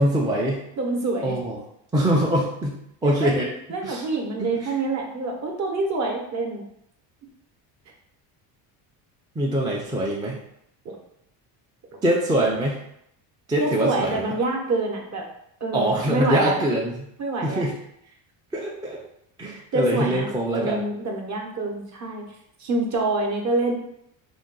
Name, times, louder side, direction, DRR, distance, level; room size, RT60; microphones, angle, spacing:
voice 1, 0.0-0.6 1.2-1.6 1.9-2.7 3.0-3.5 3.8-4.0 4.4-4.7 9.4-10.4 12.0-12.8 13.5-14.2 15.7-17.1 17.4-17.7 18.5-19.0 19.4-20.8, right 1 dB, 10° right, -3 dB, 0.3 m, -23 dB
voice 2, 0.8-1.3 3.0-6.6 10.8-11.0 13.6-15.3 15.6-16.7 17.2-17.6 19.7-20.3 20.5-22.2 22.6-23.8, right 2 dB, 40° right, 1 dB, 0.8 m, -26 dB
2.6 x 2.2 x 3.8 m, 0.76 s
supercardioid pair, 95°, 46 cm